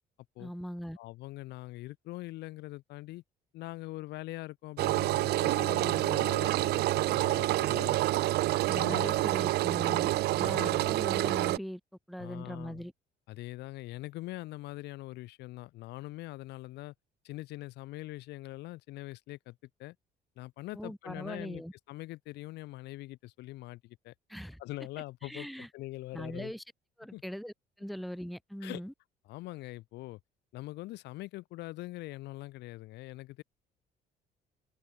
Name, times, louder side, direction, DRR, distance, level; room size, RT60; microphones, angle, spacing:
voice 1, 0.4-1.0 8.7-11.8 12.1-12.9 20.7-21.7 24.3-24.6 25.2-25.7 26.1-26.6 27.0-28.9, equal, ahead, 1.7 m, -40 dB
voice 2, 1.0-3.2 3.5-8.3 8.7-9.3 9.7-10.0 10.4-10.9 12.2-12.8 13.3-16.9 17.2-20.0 20.4-24.1 24.6-25.5 25.7-26.5 27.1-27.2 28.6-28.8 29.3-30.2 30.5-33.4, left 18 dB, 85° left, 3.7 m, -43 dB
Engine, 4.8-11.6, right 17 dB, 75° right, 0.7 m, -28 dB
open air
cardioid pair, 110°, 17 cm